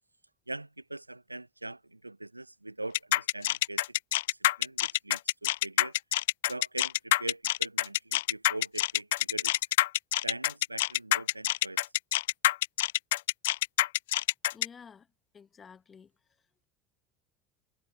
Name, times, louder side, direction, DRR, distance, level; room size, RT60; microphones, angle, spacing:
voice 1, 0.5-3.9 4.3-6.0 6.5-9.6 10.2-11.9, right 2 dB, 85° right, 1.1 m, -42 dB
sound 1, 2.9-14.7, left 16 dB, 65° left, 0.3 m, -26 dB
voice 2, 14.5-15.1 15.3-16.1, left 6 dB, 25° left, 1.7 m, -51 dB
figure-of-eight pair, 70°, 0 cm